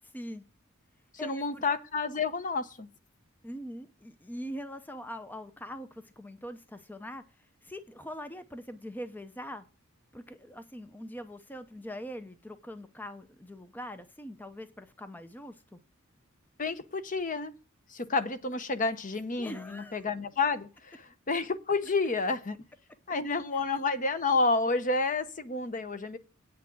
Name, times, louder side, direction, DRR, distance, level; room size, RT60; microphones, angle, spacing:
voice 1, 0.1-0.4 1.2-1.6 3.4-9.6 10.1-15.8 19.4-20.0 23.5-23.6, equal, 10° left, 0.6 m, -42 dB
voice 2, 1.2-2.9 16.6-17.5 17.9-22.6 23.1-26.2, left 3 dB, 40° left, 0.8 m, -30 dB
8.8 x 6.1 x 7.1 m
head